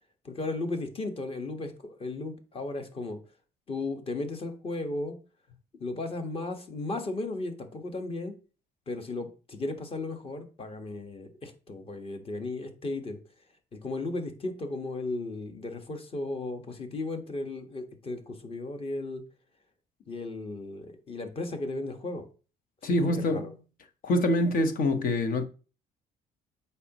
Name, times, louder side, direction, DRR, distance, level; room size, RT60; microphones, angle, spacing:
voice 1, 0.2-3.2 3.7-5.2 5.8-8.3 8.9-13.2 13.7-19.2 20.1-22.3 22.9-23.4, left 2 dB, 35° left, 1.4 m, -35 dB
voice 2, 22.8-23.6 24.0-25.5, left 1 dB, 55° left, 1.1 m, -25 dB
8.2 x 5.7 x 3.0 m
cardioid pair, 110°, 17 cm